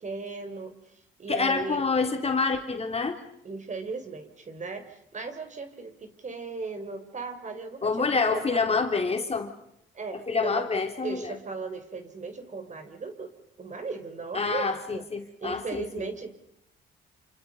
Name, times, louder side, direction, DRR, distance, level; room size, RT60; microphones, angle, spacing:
voice 1, 0.0-1.9 3.4-8.8 9.9-10.7 11.0-16.4, right 4 dB, 40° right, 8 dB, 4.3 m, -37 dB
voice 2, 1.3-3.2 7.8-9.5 10.3-11.2 14.3-14.8 15.1-15.8, left 4 dB, 30° left, 5 dB, 3.5 m, -26 dB
29.0 x 27.0 x 5.5 m, 0.78 s
cardioid pair, 90°, 20 cm